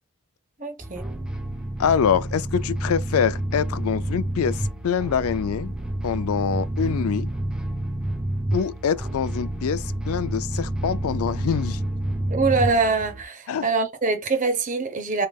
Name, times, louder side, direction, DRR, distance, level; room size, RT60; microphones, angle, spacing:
voice 1, 0.6-1.1 6.8-6.9 12.3-15.3, right 4 dB, 35° right, 0.8 m, -24 dB
sound 1, 0.8-13.2, right 1 dB, 5° right, 0.5 m, -29 dB
voice 2, 1.8-5.7 6.0-7.3 8.5-11.8 13.5-13.7, left 7 dB, 80° left, 0.4 m, -25 dB
3.5 x 3.2 x 2.3 m
head